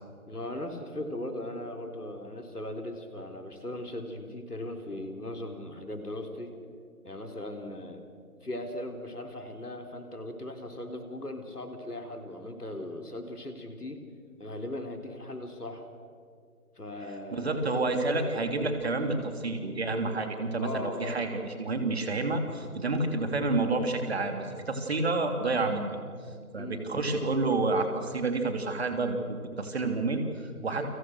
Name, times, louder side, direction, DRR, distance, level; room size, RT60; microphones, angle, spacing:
voice 1, 0.3-6.5 7.0-8.0 8.4-14.0 14.4-15.9 16.8-17.7 20.6-21.2 26.5-27.0, left 1 dB, 85° left, 5 dB, 4.1 m, -38 dB
voice 2, 17.3-26.0 26.5-30.8, right 3 dB, 45° right, 5 dB, 3.3 m, -29 dB
29.5 x 25.5 x 6.4 m, 2.2 s
figure-of-eight pair, 155°, 45 cm